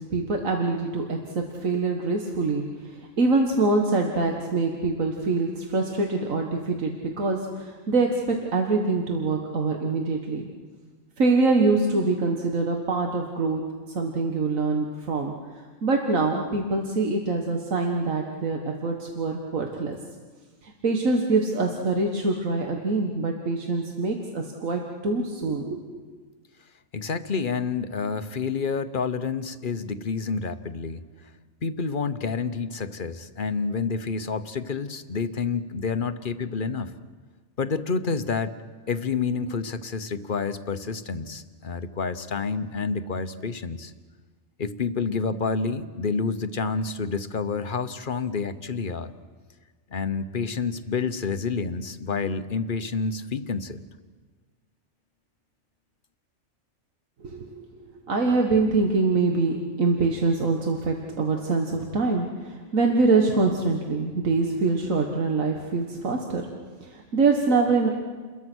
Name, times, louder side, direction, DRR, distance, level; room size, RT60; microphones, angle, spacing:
voice 1, 0.0-10.5 11.2-13.6 13.9-15.3 15.8-20.0 20.6-25.8 57.2-57.7 58.0-66.4 66.8-67.9, right 3 dB, 90° right, 2 dB, 2.1 m, -24 dB
voice 2, 26.9-31.0 31.6-36.9 37.6-38.6 38.9-43.9 44.6-49.1 49.9-53.8, left 5 dB, 45° left, 11 dB, 1.1 m, -29 dB
29.5 x 22.0 x 6.3 m, 1.5 s
omnidirectional pair, 1.3 m